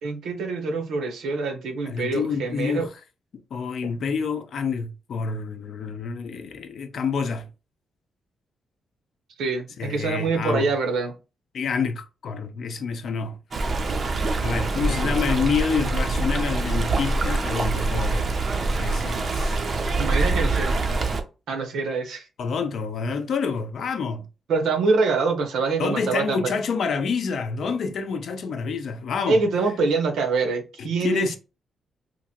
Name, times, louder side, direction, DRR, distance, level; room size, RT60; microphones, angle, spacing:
voice 1, 0.0-2.9 9.4-11.1 20.0-20.8 21.5-22.2 24.5-26.5 29.3-31.4, right 4 dB, 90° right, 0.7 m, -25 dB
voice 2, 1.9-3.0 3.5-7.5 9.8-10.7 11.5-13.4 14.4-18.3 18.8-19.6 22.4-24.3 25.8-29.4 30.8-31.4, left 5 dB, 55° left, 0.4 m, -28 dB
Stream, 13.5-21.2, right 3 dB, 35° right, 0.4 m, -24 dB
2.9 x 2.5 x 2.7 m
wide cardioid pair, 165°, 0 cm